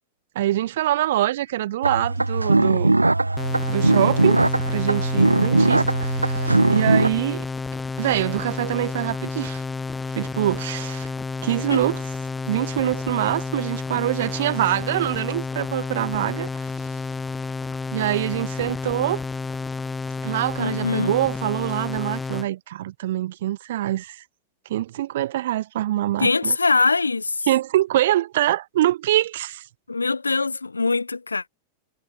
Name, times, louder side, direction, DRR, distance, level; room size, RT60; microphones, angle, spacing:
voice 1, 0.4-2.9 3.7-7.5 8.0-9.6 10.1-11.1 11.4-12.0 12.5-16.5 17.9-19.2 20.2-24.2 24.7-26.6 27.5-29.6, right 14 dB, 55° right, 1.9 m, -24 dB
sound 1, 1.8-7.1, right 2 dB, 85° right, 0.5 m, -20 dB
sound 2, 3.4-22.5, left 4 dB, 10° left, 7.3 m, -30 dB
voice 2, 20.6-21.2 26.2-27.5 29.9-31.5, left 3 dB, 80° left, 4.8 m, -23 dB
figure-of-eight pair, 90°, 0 cm